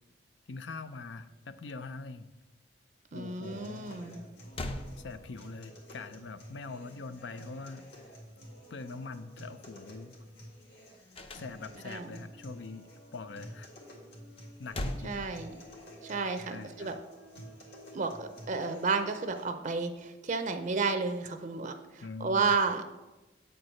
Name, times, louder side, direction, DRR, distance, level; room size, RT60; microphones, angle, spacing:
voice 1, 0.5-2.3 3.1-4.0 5.0-7.8 8.7-10.2 11.3-12.9 13.1-13.7 14.6-15.2 16.5-17.0 22.0-22.5, left 3 dB, 80° left, 11 dB, 0.5 m, -43 dB
voice 2, 3.1-4.2 11.8-12.2 15.0-15.6 16.0-17.0 17.9-22.8, right 4 dB, 45° right, 7 dB, 0.5 m, -32 dB
sound 1, 3.4-19.4, equal, 65° left, 1.9 m, -51 dB
sound 2, 4.1-4.2 4.5-5.7 11.1-12.0 14.4-16.0, left 1 dB, 35° left, 0.6 m, -40 dB
8.4 x 4.5 x 6.4 m, 1.1 s
head